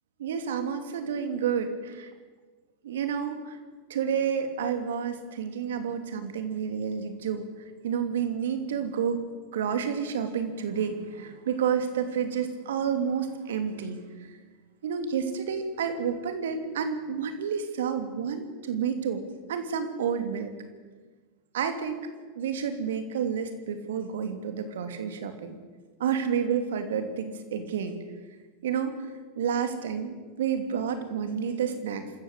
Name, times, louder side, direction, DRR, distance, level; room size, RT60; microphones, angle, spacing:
voice 1, 0.2-2.1 2.8-3.6 3.9-7.4 7.8-9.2 9.5-14.0 14.8-19.2 19.5-20.5 21.5-22.0 22.4-25.6 26.0-28.0 28.6-29.0 29.4-32.0, right 7 dB, 70° right, 7 dB, 2.9 m, -30 dB
25.5 x 14.0 x 8.0 m, 1.4 s
hypercardioid pair, 95°, 0 cm